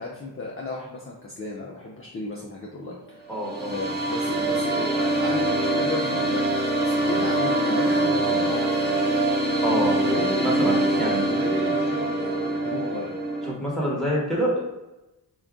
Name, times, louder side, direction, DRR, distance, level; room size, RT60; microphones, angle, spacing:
voice 1, 0.0-3.2 3.7-8.8 9.7-13.1, left 2 dB, 30° left, -3 dB, 0.5 m, -34 dB
voice 2, 3.3-3.7 9.6-10.0 10.4-11.2 13.5-14.6, equal, ahead, -5 dB, 1.1 m, -26 dB
sound 1, 3.3-13.5, right 2 dB, 25° right, 0.7 m, -24 dB
2.4 x 2.3 x 3.5 m, 1.0 s
cardioid pair, 65°, 42 cm